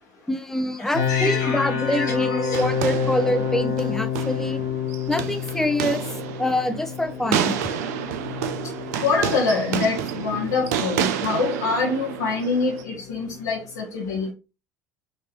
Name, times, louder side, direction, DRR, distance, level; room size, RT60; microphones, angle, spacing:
voice 1, 0.3-4.6 5.1-6.0 6.4-7.6, left 1 dB, 5° left, 9 dB, 0.6 m, -25 dB
voice 2, 0.8-2.6 9.0-14.3, left 4 dB, 75° left, -3 dB, 0.9 m, -26 dB
sound 1, 0.9-13.8, left 7 dB, 55° left, 1.2 m, -30 dB
sound 2, 2.5-12.8, right 9 dB, 70° right, 0.5 m, -29 dB
4.1 x 3.2 x 3.0 m, 0.30 s
figure-of-eight pair, 65°, 9 cm